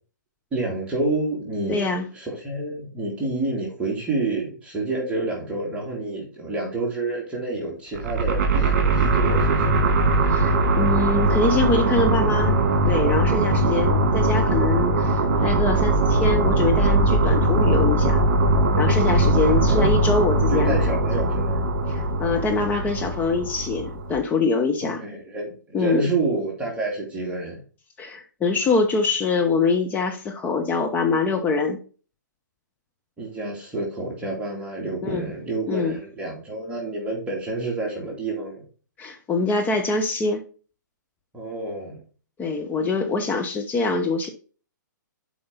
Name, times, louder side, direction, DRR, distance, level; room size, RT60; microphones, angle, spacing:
voice 1, 0.5-1.9 2.1-9.9 19.3-19.9 20.5-21.6 24.8-27.6 33.2-38.6 41.3-42.0, right 2 dB, 10° right, -3 dB, 2.7 m, -28 dB
voice 2, 1.7-2.1 10.3-12.6 12.9-18.2 18.8-20.8 21.9-25.0 25.7-26.1 28.0-31.8 35.0-35.3 35.7-36.0 39.0-40.4 42.4-44.3, left 3 dB, 15° left, 4 dB, 0.9 m, -24 dB
sound 1, 7.9-24.1, right 2 dB, 45° right, 2.3 m, -20 dB
7.8 x 5.1 x 3.9 m, 0.37 s
hypercardioid pair, 130°, 10 cm